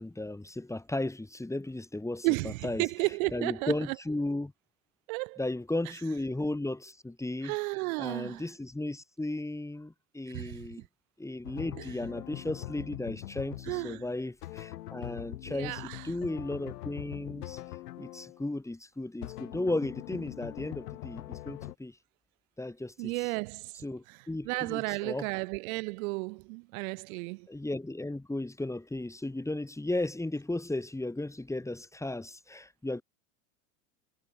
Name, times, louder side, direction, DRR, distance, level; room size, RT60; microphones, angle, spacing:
voice 1, 0.0-2.8 3.3-4.5 5.4-7.5 8.0-10.8 11.2-15.8 16.0-17.6 18.0-21.9 22.6-23.1 23.8-25.3 27.5-33.0, left 2 dB, 5° left, 3.9 m, -35 dB
voice 2, 2.2-4.0 5.1-5.4 5.8-6.0 7.4-8.5 10.3-10.7 11.8-12.0 13.6-14.0 15.5-16.1 23.0-27.5, right 28 dB, 65° right, 1.0 m, -33 dB
sound 1, 11.4-18.4 19.2-21.7, left 15 dB, 80° left, 3.1 m, -42 dB
hypercardioid pair, 105°, 46 cm